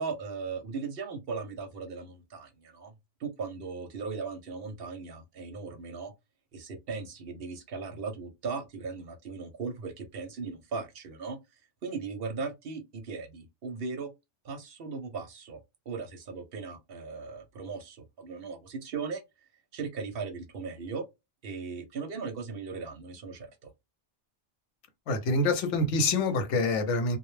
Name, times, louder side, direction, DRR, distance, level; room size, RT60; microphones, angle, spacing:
voice 1, 0.0-2.9 3.2-6.1 6.5-11.4 11.8-14.1 14.4-15.6 15.9-19.2 19.7-21.0 21.4-23.7, right 4 dB, 60° right, 0.7 m, -38 dB
voice 2, 25.1-27.2, left 2 dB, 85° left, 0.9 m, -26 dB
2.1 x 2.0 x 3.0 m
omnidirectional pair, 1.2 m